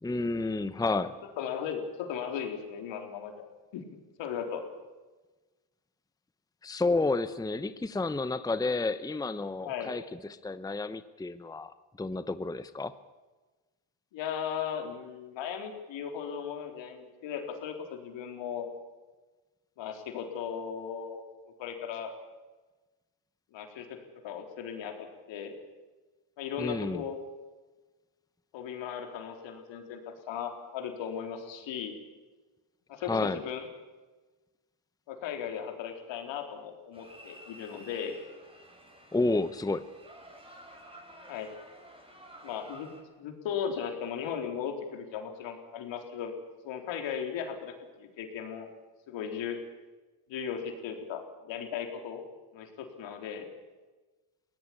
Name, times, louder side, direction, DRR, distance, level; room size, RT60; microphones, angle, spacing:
voice 1, 0.0-1.1 6.6-10.0 10.3-11.7 12.0-12.9 26.6-27.0 33.0-33.4 39.1-39.9, left 3 dB, 10° left, 13 dB, 0.9 m, -30 dB
voice 2, 1.4-3.4 3.7-3.8 4.2-4.6 9.6-9.9 14.1-18.7 19.8-21.2 21.6-22.1 23.5-23.9 24.2-25.5 26.4-27.2 28.5-30.0 30.3-32.0 32.9-33.7 35.1-38.2 41.3-41.5 42.4-42.9 43.2-46.3 46.6-47.7 48.0-48.7 49.1-49.6 50.3-52.2 52.5-53.5, left 8 dB, 75° left, 4 dB, 4.0 m, -37 dB
sound 1, 36.9-43.0, equal, 10° right, 7.3 m, -51 dB
21.5 x 17.5 x 8.8 m, 1.2 s
supercardioid pair, 85°, 45 cm